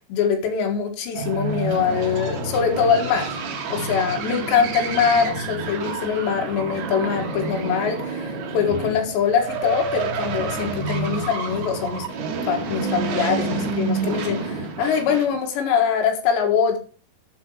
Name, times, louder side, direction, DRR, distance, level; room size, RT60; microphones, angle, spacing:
voice 1, 0.1-3.4 3.7-12.1 12.5-16.8, left 7 dB, 90° left, 3 dB, 3.8 m, -23 dB
sound 1, 1.1-15.4, right 4 dB, 75° right, 3.7 m, -29 dB
9.1 x 7.8 x 4.8 m, 0.39 s
omnidirectional pair, 4.9 m